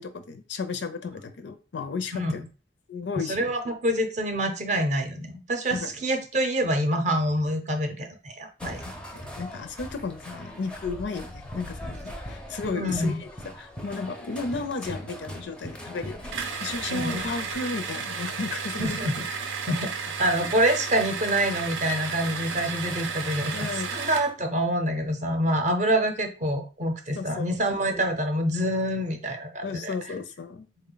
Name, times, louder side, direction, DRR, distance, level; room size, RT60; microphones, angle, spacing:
voice 1, 0.0-2.4 2.9-3.5 5.7-5.9 8.6-13.3 13.6-16.3 16.6-19.0 19.7-19.8 23.5-24.0 27.2-27.5 29.6-30.7, left 4 dB, 65° left, 9 dB, 0.5 m, -34 dB
voice 2, 3.1-8.8 12.7-13.2 16.9-17.2 18.8-19.2 19.7-19.9 20.2-23.7 23.9-29.9, right 1 dB, 40° right, 6 dB, 0.6 m, -26 dB
sound 1, 8.6-17.6, equal, 5° left, 0.4 m, -40 dB
sound 2, 16.3-24.3, right 5 dB, 85° right, 0.5 m, -33 dB
3.7 x 2.1 x 3.8 m, 0.34 s
head